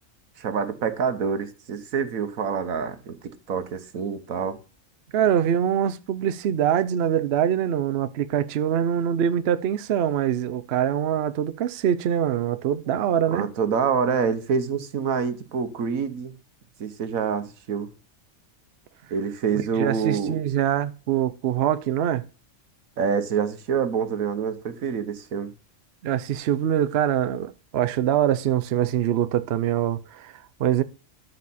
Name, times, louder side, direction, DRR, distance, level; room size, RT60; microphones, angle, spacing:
voice 1, 0.4-4.6 13.3-16.3 16.8-17.9 19.1-20.4 23.0-25.5, right 6 dB, 85° right, 1.5 m, -26 dB
voice 2, 5.1-13.5 19.5-22.2 26.0-30.8, right 10 dB, 60° right, 0.8 m, -24 dB
13.0 x 4.9 x 4.1 m
omnidirectional pair, 1.4 m